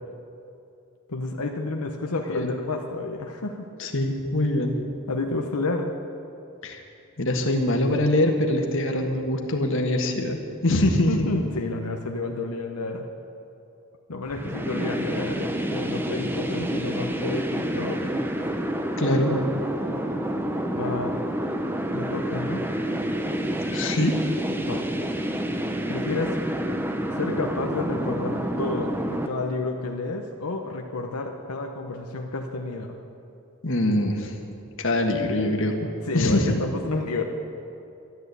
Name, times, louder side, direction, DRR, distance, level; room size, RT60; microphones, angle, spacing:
voice 1, 1.1-3.7 5.1-5.9 11.1-13.1 14.1-18.2 20.7-21.2 21.9-22.7 24.6-24.8 25.9-26.4 27.1-33.0 36.0-37.2, left 3 dB, 90° left, 2 dB, 1.1 m, -30 dB
voice 2, 3.8-4.8 6.6-6.8 7.2-11.1 19.0-19.3 23.6-24.2 33.6-34.3 34.8-35.8 36.1-36.6, left 1 dB, 55° left, 3 dB, 1.6 m, -23 dB
sound 1, 14.3-29.3, right 1 dB, 10° right, 0.7 m, -28 dB
12.5 x 11.5 x 8.3 m, 2.7 s
head